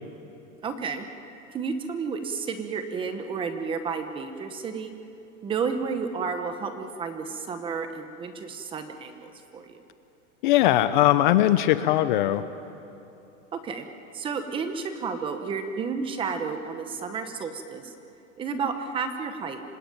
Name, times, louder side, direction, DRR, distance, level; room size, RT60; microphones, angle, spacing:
voice 1, 0.6-1.1 1.5-4.9 5.4-9.8 13.5-13.9 14.1-17.9 18.4-19.6, right 5 dB, 15° right, 8 dB, 0.9 m, -31 dB
voice 2, 10.4-12.4, left 13 dB, 40° left, 12 dB, 0.7 m, -20 dB
26.5 x 18.5 x 9.1 m, 2.8 s
supercardioid pair, 170°, 39 cm